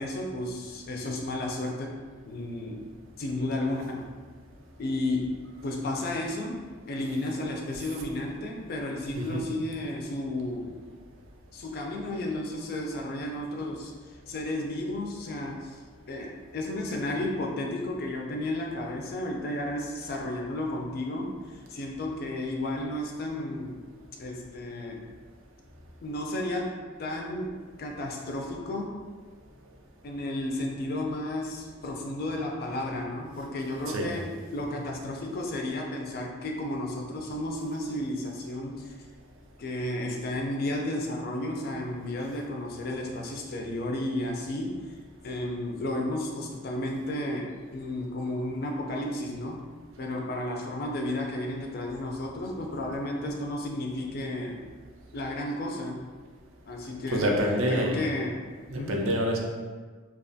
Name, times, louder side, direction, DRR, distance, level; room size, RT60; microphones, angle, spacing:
voice 1, 0.0-1.9 2.3-2.8 3.2-4.1 4.8-6.6 6.9-10.7 11.5-15.8 16.1-23.8 24.2-25.0 26.0-28.9 30.0-34.3 34.5-38.9 39.6-45.0 45.2-49.6 50.0-54.6 55.1-56.1 56.7-57.3 57.7-58.4 58.8-59.1, left 1 dB, 50° left, 0 dB, 0.3 m, -33 dB
voice 2, 9.1-9.5 33.9-34.1 57.1-58.0 58.7-59.4, equal, 80° right, 0 dB, 0.4 m, -27 dB
2.4 x 2.3 x 2.5 m, 1.5 s
head